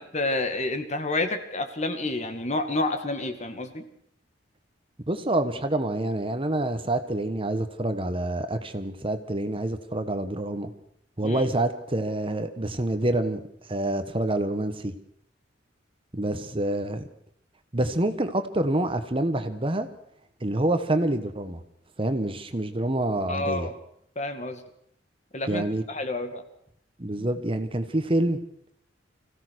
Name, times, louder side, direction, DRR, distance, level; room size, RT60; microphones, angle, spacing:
voice 1, 0.0-3.8 11.2-11.4 23.3-23.7 24.2-24.6 25.3-26.4 27.2-27.3, left 2 dB, 35° left, 7 dB, 2.3 m, -29 dB
voice 2, 5.1-10.7 11.2-13.4 13.7-14.9 16.1-17.1 17.7-19.9 20.4-21.6 22.0-23.7 25.5-25.8 27.0-28.4, right 1 dB, 30° right, 9 dB, 1.4 m, -27 dB
25.5 x 16.0 x 6.4 m, 0.72 s
head